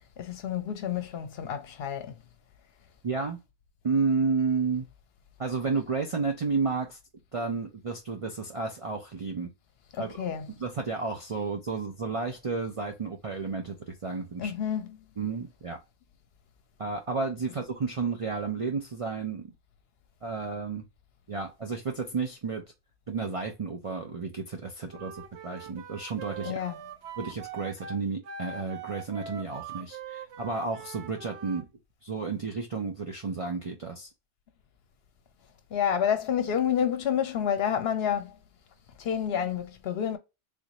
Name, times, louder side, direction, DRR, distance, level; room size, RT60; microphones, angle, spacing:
voice 1, 0.2-2.2 9.9-10.5 14.4-15.0 26.4-26.8 35.7-38.4 39.0-40.2, left 9 dB, 65° left, 0.8 m, -29 dB
voice 2, 3.0-3.4 3.8-4.8 5.4-7.0 7.3-9.5 10.0-10.3 10.6-14.5 15.2-15.8 16.8-19.5 20.2-20.8 21.3-22.6 23.1-26.6 27.2-31.7 32.0-34.1, right 4 dB, 40° right, 0.6 m, -31 dB
Wind instrument woodwind instrument, 24.9-31.7, right 6 dB, 85° right, 0.9 m, -42 dB
3.6 x 2.5 x 2.9 m
omnidirectional pair, 1.1 m